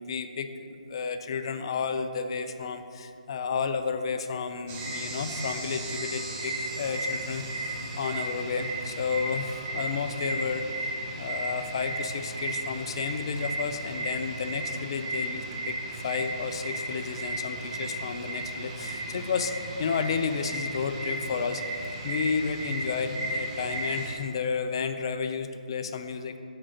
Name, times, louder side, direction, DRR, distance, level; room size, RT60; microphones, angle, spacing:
voice 1, 0.0-15.8 16.0-19.5 19.8-21.6 22.0-26.4, left 5 dB, 40° left, 9 dB, 0.4 m, -32 dB
sound 1, 4.7-24.1, right 1 dB, 20° right, 0.8 m, -35 dB
6.1 x 3.7 x 6.2 m, 2.6 s
hypercardioid pair, 160°, 4 cm